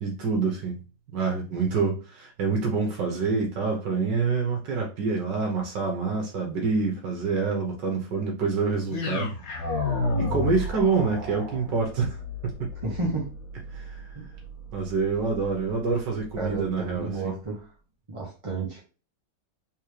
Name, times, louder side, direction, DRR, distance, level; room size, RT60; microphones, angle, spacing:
voice 1, 0.0-0.8 1.1-9.3 10.2-12.2 12.4-12.7 13.7-14.0 14.7-17.3, right 4 dB, 80° right, 0 dB, 1.6 m, -27 dB
sound 1, 8.9-17.1, left 2 dB, 55° left, 1.6 m, -33 dB
voice 2, 12.8-13.3 14.1-14.2 16.4-17.7 18.1-18.8, right 3 dB, 30° right, -3 dB, 0.6 m, -31 dB
3.6 x 3.3 x 3.2 m, 0.34 s
omnidirectional pair, 1.9 m